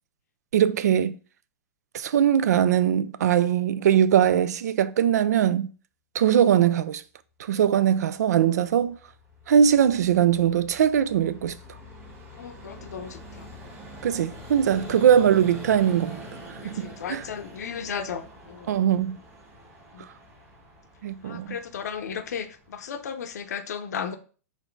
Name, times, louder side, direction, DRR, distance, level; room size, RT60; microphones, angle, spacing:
voice 1, 0.5-1.2 1.9-5.7 6.1-7.0 7.4-9.0 9.5-11.6 14.0-16.2 16.6-17.2 18.7-19.2 21.0-21.5, right 9 dB, 80° right, 0.4 m, -21 dB
Vehicle, 8.7-23.4, equal, 25° right, 1.6 m, -45 dB
voice 2, 12.3-13.5 14.1-14.4 14.7-15.1 16.6-18.8 19.9-20.1 21.2-24.2, left 7 dB, 80° left, 0.7 m, -35 dB
4.1 x 2.8 x 4.4 m
hypercardioid pair, 135°, 9 cm